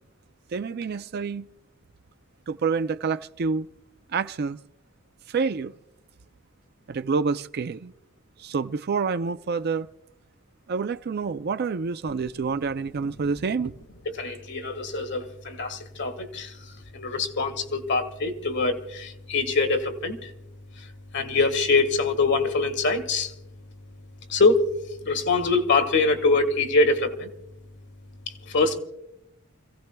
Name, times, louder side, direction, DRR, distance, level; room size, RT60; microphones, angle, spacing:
voice 1, 0.5-1.5 2.5-3.7 4.1-4.6 5.3-5.7 6.9-7.9 8.4-9.9 10.7-13.7, right 5 dB, 50° right, 0.4 m, -27 dB
voice 2, 14.1-16.5 16.9-20.3 21.1-23.3 24.3-24.6 25.1-27.3 28.5-28.8, left 3 dB, 60° left, 1.6 m, -24 dB
29.0 x 16.5 x 2.3 m
head